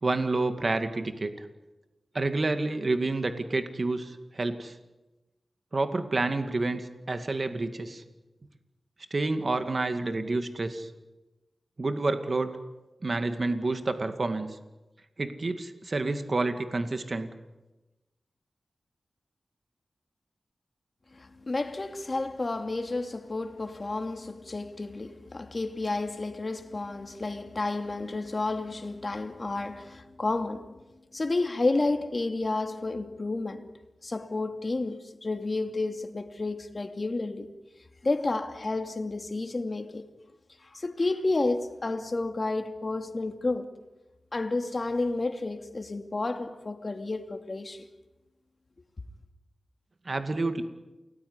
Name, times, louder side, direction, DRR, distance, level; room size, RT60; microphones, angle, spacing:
voice 1, 0.0-1.5 2.1-4.7 5.7-8.0 9.1-10.9 11.8-12.6 13.0-14.6 15.2-17.3 50.1-50.6, right 2 dB, 50° right, 2.2 m, -29 dB
voice 2, 21.1-30.8 31.1-33.7 34.0-37.5 38.0-40.0 40.6-43.7 44.3-47.9, left 2 dB, 40° left, 2.7 m, -31 dB
29.0 x 19.0 x 9.7 m
wide cardioid pair, 75°, 0 cm